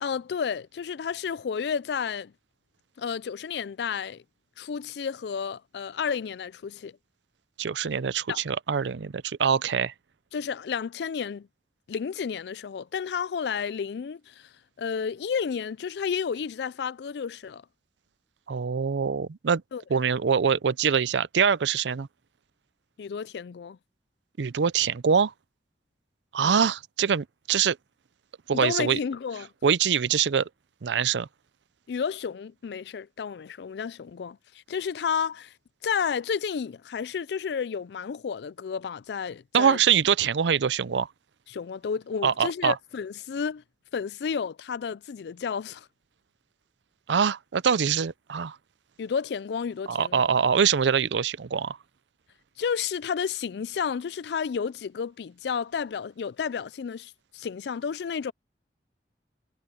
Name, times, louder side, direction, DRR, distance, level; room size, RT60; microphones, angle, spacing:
voice 1, 0.0-2.3 3.0-4.2 4.6-7.0 8.3-8.4 10.3-11.5 11.9-14.5 14.8-17.6 19.7-19.8 23.0-23.8 26.4-26.6 28.5-29.5 31.9-35.5 35.8-39.8 41.5-43.6 43.9-45.9 49.0-50.3 52.6-58.3, left 6 dB, 65° left, 0.4 m, -31 dB
voice 2, 7.6-9.9 18.5-19.6 19.9-22.1 24.4-25.3 26.3-27.8 28.5-29.0 29.6-30.5 30.8-31.3 39.5-41.1 42.2-42.8 47.1-48.6 49.9-51.8, right 7 dB, 85° right, 0.5 m, -24 dB
head